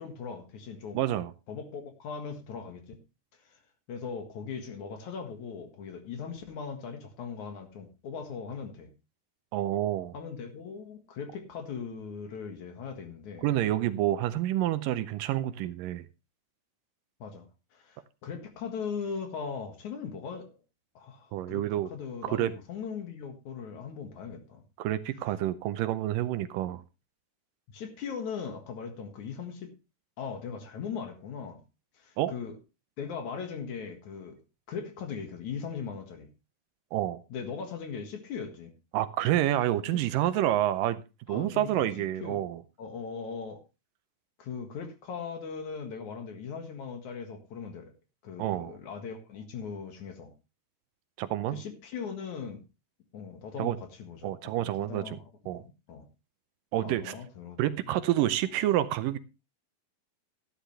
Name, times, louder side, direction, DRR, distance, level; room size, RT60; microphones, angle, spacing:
voice 1, 0.0-1.0 1.5-3.0 3.5-3.6 3.9-8.9 10.1-13.5 17.2-20.5 20.9-21.6 21.9-24.6 27.7-29.7 30.2-31.6 32.0-32.6 33.0-34.4 34.7-36.3 37.3-38.7 39.9-40.0 41.3-41.9 42.2-42.4 42.8-43.6 44.4-47.9 48.2-50.3 51.5-52.6 53.1-56.1 56.8-57.6 57.8-58.0, left 6 dB, 60° left, 6 dB, 2.9 m, -39 dB
voice 2, 0.9-1.3 9.5-10.1 13.4-16.1 21.3-21.9 22.2-22.5 24.8-26.8 32.2-32.3 36.9-37.2 38.9-41.0 41.3-42.6 48.4-48.8 51.2-51.6 53.6-53.8 54.2-55.2 55.5-55.6 56.7-57.2 57.6-59.2, right 13 dB, 75° right, 13 dB, 2.2 m, -28 dB
13.0 x 11.5 x 3.2 m, 0.27 s
omnidirectional pair, 4.1 m